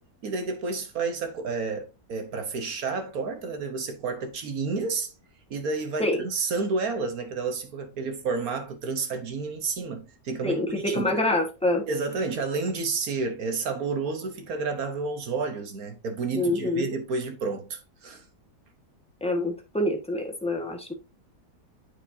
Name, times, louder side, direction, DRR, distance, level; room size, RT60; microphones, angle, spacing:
voice 1, 0.2-5.1 5.5-11.2 11.9-18.2, right 4 dB, 60° right, 1.5 m, -30 dB
voice 2, 10.9-11.8 16.3-16.9 19.2-20.9, left 1 dB, 5° left, 1.3 m, -26 dB
9.0 x 4.8 x 2.7 m
omnidirectional pair, 1.8 m